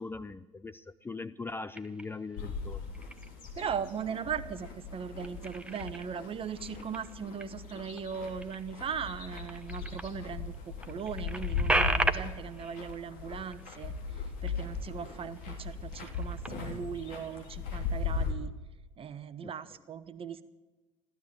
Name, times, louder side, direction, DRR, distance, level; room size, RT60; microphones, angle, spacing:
voice 1, 0.0-2.8, left 3 dB, 15° left, 14 dB, 0.6 m, -40 dB
sound 1, 1.7-2.4 2.9-3.5 3.9-4.7 5.0-10.2 10.5-10.6 10.8-14.8 15.1-15.4 15.8-16.9, right 2 dB, 5° right, 1.0 m, -36 dB
sound 2, 2.4-18.3, left 4 dB, 55° left, 3.4 m, -38 dB
voice 2, 3.6-10.5 10.9-18.5 19.0-20.4, right 7 dB, 35° right, 13 dB, 1.2 m, -39 dB
15.0 x 12.0 x 7.6 m, 1.2 s
hypercardioid pair, 70°, 17 cm